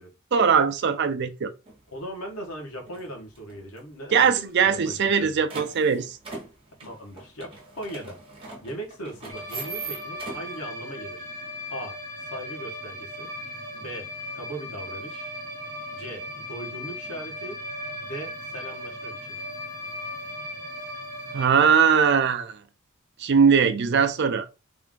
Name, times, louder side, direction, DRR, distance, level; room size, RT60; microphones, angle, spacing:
voice 1, 0.3-1.5 4.1-6.2 21.3-22.6 23.2-24.5, right 6 dB, 55° right, 0.4 m, -20 dB
sound 1, 1.7-1.8 2.3-2.6 2.9-3.8 4.1-4.2 4.4-4.5 4.9-10.6, right 4 dB, 25° right, 1.1 m, -40 dB
voice 2, 1.9-5.4 6.8-8.2 8.6-11.3 11.7-12.0 12.3-13.3 13.7-15.3 15.9-17.6 18.0-19.4, right 1 dB, 85° left, 1.3 m, -39 dB
sound 2, 9.3-21.5, left 1 dB, 15° left, 1.1 m, -37 dB
3.4 x 2.5 x 3.6 m
head